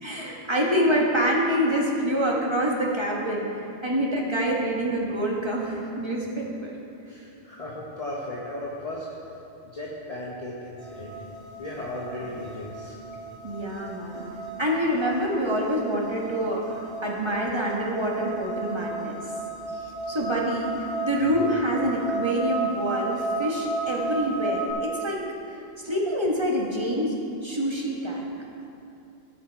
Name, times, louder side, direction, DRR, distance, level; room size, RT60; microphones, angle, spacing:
voice 1, 0.0-6.7 13.4-14.3 14.6-19.2 19.8-25.2 25.8-27.1 27.4-28.3, equal, 25° right, -3 dB, 1.4 m, -26 dB
voice 2, 7.1-9.1 9.6-11.2 11.6-13.0 21.2-21.3 25.6-25.7, left 1 dB, 35° left, -6 dB, 1.3 m, -36 dB
sound 1, 10.8-24.7, right 3 dB, 65° right, 2.4 m, -34 dB
16.0 x 6.4 x 4.6 m, 2.7 s
omnidirectional pair, 1.1 m